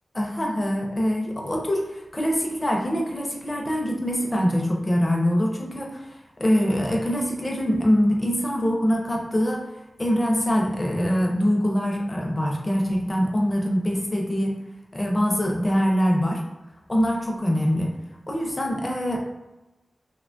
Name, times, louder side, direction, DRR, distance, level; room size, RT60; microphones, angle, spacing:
voice 1, 0.1-6.1 6.4-9.7 10.0-14.5 14.9-16.4 16.9-17.9 18.3-19.2, equal, 25° left, -1 dB, 0.4 m, -24 dB
2.9 x 2.2 x 2.5 m, 1.0 s
wide cardioid pair, 100°, 0 cm